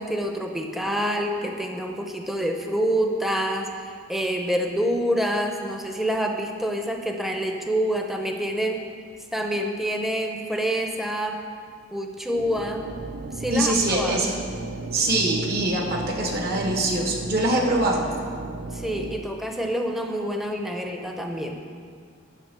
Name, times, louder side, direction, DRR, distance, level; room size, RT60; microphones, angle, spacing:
voice 1, 0.0-3.7 4.1-8.8 9.3-11.4 11.9-12.9 13.4-14.3 18.7-21.6, equal, ahead, 2 dB, 0.7 m, -27 dB
sound 1, 12.3-19.2, right 3 dB, 85° right, 0.6 m, -35 dB
voice 2, 13.5-14.4 14.9-18.0, right 1 dB, 55° right, 1 dB, 1.4 m, -23 dB
9.1 x 6.1 x 6.7 m, 2.1 s
head